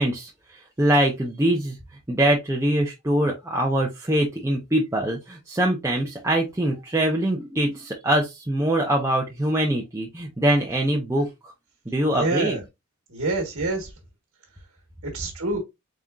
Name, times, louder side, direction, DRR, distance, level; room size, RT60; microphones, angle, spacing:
voice 1, 0.0-1.8 2.1-11.5 11.9-12.6, right 1 dB, 15° right, 0.6 m, -23 dB
voice 2, 12.1-12.6 13.1-13.9 15.0-15.6, right 2 dB, 60° right, 1.4 m, -26 dB
4.1 x 3.7 x 2.4 m
head